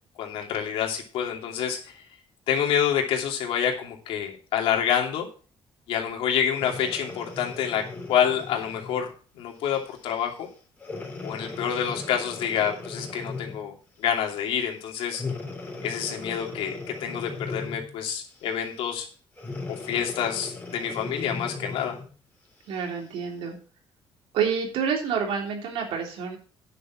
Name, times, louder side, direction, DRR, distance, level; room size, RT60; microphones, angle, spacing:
voice 1, 0.2-1.9 2.5-5.3 5.9-7.8 8.1-10.5 11.2-13.7 14.0-15.2 15.8-16.7 17.0-19.1 19.8-22.0, left 8 dB, 80° left, 1 dB, 2.9 m, -27 dB
Breathing, 6.5-9.1 9.8-10.0 10.8-13.7 15.1-18.0 19.4-22.1 22.7-22.8, left 3 dB, 15° left, 3.6 m, -37 dB
voice 2, 22.7-23.6 24.3-26.4, right 7 dB, 85° right, 1 dB, 3.4 m, -28 dB
9.9 x 6.9 x 6.0 m, 0.39 s
cardioid pair, 140°, 9 cm